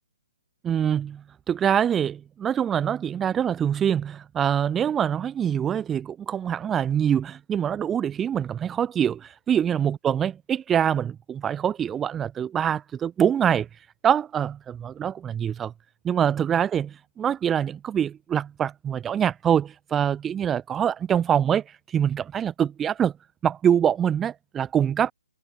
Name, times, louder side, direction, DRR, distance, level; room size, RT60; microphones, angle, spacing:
voice 1, 0.6-13.7 14.0-15.7 16.0-21.6 21.9-23.1 23.4-25.1, right 9 dB, 10° right, 0.5 m, -24 dB
hypercardioid pair, 160°, 0 cm